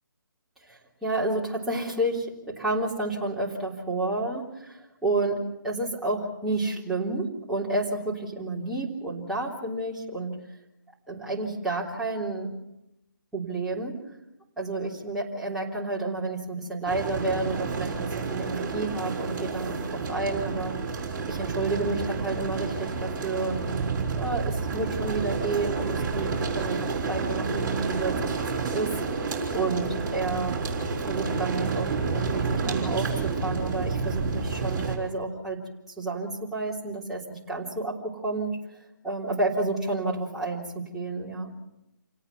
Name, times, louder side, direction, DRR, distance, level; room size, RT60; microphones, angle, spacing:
voice 1, 0.7-5.4 5.6-10.4 11.1-12.6 13.3-14.0 14.6-20.8 21.3-26.3 26.5-28.2 28.6-28.9 29.2-30.5 31.0-35.6 36.0-38.5 39.0-41.5, right 2 dB, 5° right, -6 dB, 3.4 m, -30 dB
sound 1, 16.9-35.0, right 4 dB, 20° right, 4.7 m, -30 dB
28.5 x 18.0 x 6.1 m, 0.90 s
figure-of-eight pair, 145°, 11 cm